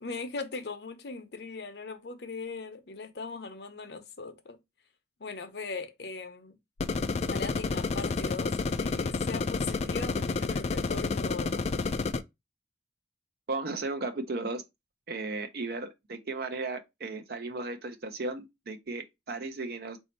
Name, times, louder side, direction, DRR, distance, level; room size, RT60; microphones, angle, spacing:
voice 1, 0.0-4.6 5.2-6.6 7.2-11.6, left 3 dB, 65° left, 0.8 m, -39 dB
sound 1, 6.8-12.2, left 4 dB, 35° left, 0.3 m, -30 dB
voice 2, 13.5-14.6 15.1-20.0, right 3 dB, 60° right, 0.6 m, -35 dB
4.2 x 2.7 x 4.3 m
head